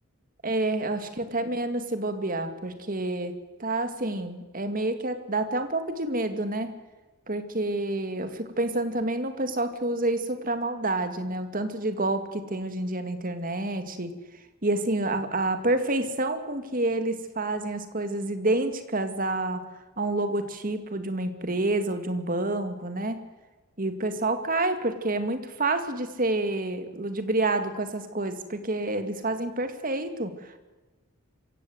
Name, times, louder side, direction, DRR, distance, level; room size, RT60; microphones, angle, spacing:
voice 1, 0.4-3.3 3.6-6.7 7.3-14.1 14.6-19.6 20.0-23.2 23.8-30.6, right 2 dB, 40° right, 8 dB, 2.1 m, -28 dB
26.0 x 16.0 x 8.0 m, 1.2 s
head